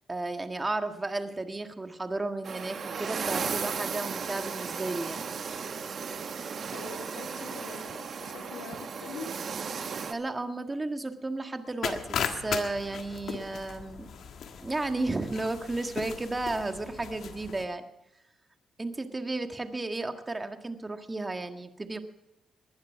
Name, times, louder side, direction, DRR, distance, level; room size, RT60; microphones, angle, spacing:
voice 1, 0.1-5.2 10.1-14.1 14.6-17.9 18.8-22.0, right 2 dB, 25° right, 7 dB, 1.7 m, -33 dB
sound 1, 2.4-10.1, right 6 dB, 55° right, 1.2 m, -35 dB
voice 2, 6.7-9.3, left 4 dB, 90° left, 1 dB, 3.1 m, -43 dB
sound 2, 11.8-17.6, left 7 dB, 70° left, 1.5 m, -37 dB
20.5 x 11.0 x 4.7 m, 0.85 s
supercardioid pair, 60°, 0 cm